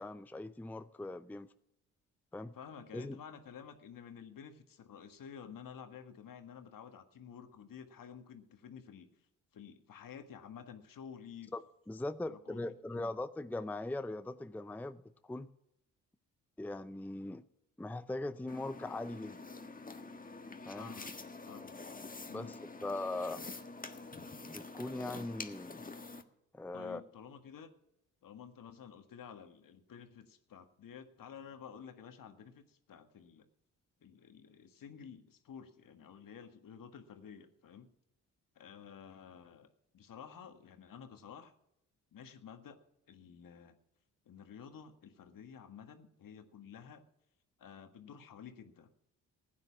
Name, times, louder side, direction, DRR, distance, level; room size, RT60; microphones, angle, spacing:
voice 1, 0.0-1.5 2.3-2.5 2.9-3.2 11.5-11.6 11.9-15.5 16.6-17.4 17.8-19.4 20.6-20.9 22.3-22.5 22.8-23.5 24.4-25.8 26.5-27.0, left 2 dB, 5° left, 0.6 m, -40 dB
voice 2, 2.5-9.1 9.5-11.5 12.3-12.6 12.9-13.2 20.7-21.1 21.4-21.8 22.3-22.6 26.7-27.7 28.2-33.5 34.0-37.9 38.6-41.5 42.1-42.8 43.1-43.8 44.3-47.0 47.6-49.0, left 7 dB, 60° left, 1.7 m, -51 dB
Hair Brush Through Wet Hair, 18.5-26.2, left 3 dB, 20° left, 1.4 m, -47 dB
15.0 x 9.6 x 6.0 m
supercardioid pair, 50°, 37 cm